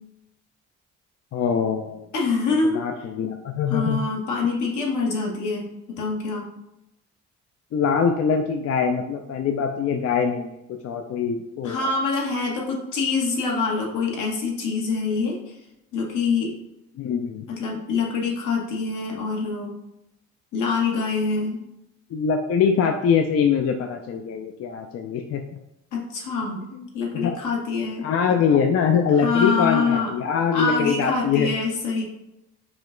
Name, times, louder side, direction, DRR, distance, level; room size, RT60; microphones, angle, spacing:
voice 1, 1.3-2.1 2.7-4.0 7.7-10.5 10.8-11.9 17.0-17.5 22.1-25.4 26.7-26.9 27.1-27.3 28.0-31.5, left 6 dB, 55° left, 4 dB, 0.4 m, -23 dB
voice 2, 2.1-2.8 3.7-5.7 5.9-6.5 11.6-15.4 15.9-16.5 17.5-19.8 20.5-21.6 25.9-26.6 26.9-28.0 29.2-30.1 30.5-32.0, left 4 dB, 80° left, -2 dB, 1.2 m, -25 dB
4.9 x 2.2 x 3.7 m, 0.88 s
cardioid pair, 90°, 30 cm